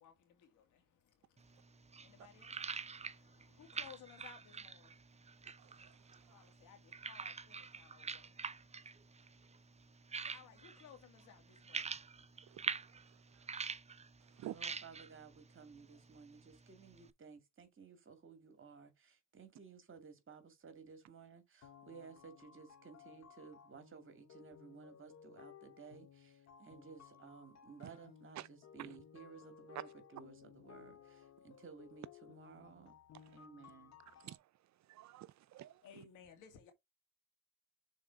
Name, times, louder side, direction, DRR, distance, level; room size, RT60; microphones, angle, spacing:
sound 1, 1.4-17.1, right 5 dB, 20° right, 0.6 m, -47 dB
voice 1, 2.0-2.5 3.6-4.9 6.3-6.8 7.1-8.2 10.3-11.4 11.7-11.9 35.8-36.7, left 7 dB, 85° left, 2.3 m, -58 dB
voice 2, 5.6-6.5 10.2-10.3 12.5-12.6 14.4-14.6 28.4-28.5 34.2-34.4 34.9-35.8, right 13 dB, 65° right, 0.6 m, -50 dB
voice 3, 14.5-33.0 33.3-34.0, right 5 dB, 40° right, 2.3 m, -56 dB
sound 2, 21.6-34.4, left 8 dB, 60° left, 2.0 m, -59 dB
6.4 x 4.0 x 4.6 m
cardioid pair, 90°, 30 cm